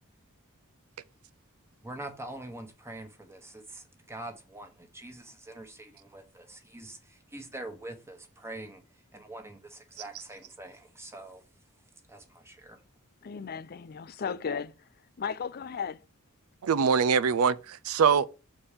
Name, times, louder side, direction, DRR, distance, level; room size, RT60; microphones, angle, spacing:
voice 1, 1.8-8.8 9.1-11.4 12.1-12.8, right 1 dB, 10° right, 1.2 m, -44 dB
voice 2, 13.2-14.9 15.2-16.0, left 6 dB, 45° left, 0.5 m, -35 dB
voice 3, 16.6-18.3, right 6 dB, 70° right, 0.4 m, -23 dB
7.1 x 4.3 x 5.0 m
head